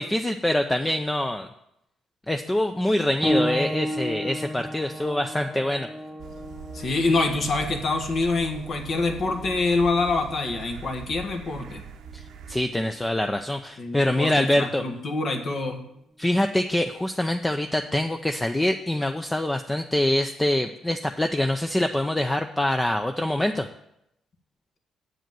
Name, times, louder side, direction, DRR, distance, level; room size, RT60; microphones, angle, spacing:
voice 1, 0.0-1.5 2.3-5.9 12.1-14.8 16.2-23.7, left 1 dB, 15° left, 6 dB, 0.5 m, -25 dB
sound 1, 3.2-13.4 14.4-14.5 15.3-15.4, equal, 5° right, 1.5 m, -34 dB
sound 2, 6.2-12.6, right 6 dB, 75° right, 0.7 m, -42 dB
voice 2, 6.7-11.8 13.8-15.8, left 3 dB, 55° left, 4 dB, 1.5 m, -26 dB
8.1 x 5.0 x 7.5 m, 0.81 s
cardioid pair, 90°, 0 cm